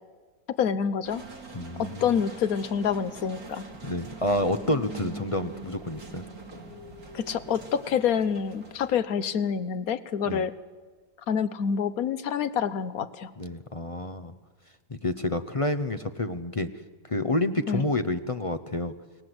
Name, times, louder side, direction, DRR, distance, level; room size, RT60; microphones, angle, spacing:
voice 1, 0.5-1.2 1.8-3.7 7.1-10.5 11.3-13.3 17.7-17.8, left 7 dB, 60° left, 13 dB, 1.3 m, -27 dB
sound 1, 1.0-9.0, right 3 dB, 60° right, 3.2 m, -43 dB
voice 2, 1.5-2.1 3.8-6.2 10.3-10.5 13.4-14.4 14.9-16.7 17.0-18.9, left 1 dB, 35° left, 9 dB, 0.5 m, -29 dB
29.5 x 18.5 x 7.9 m, 1.4 s
omnidirectional pair, 1.8 m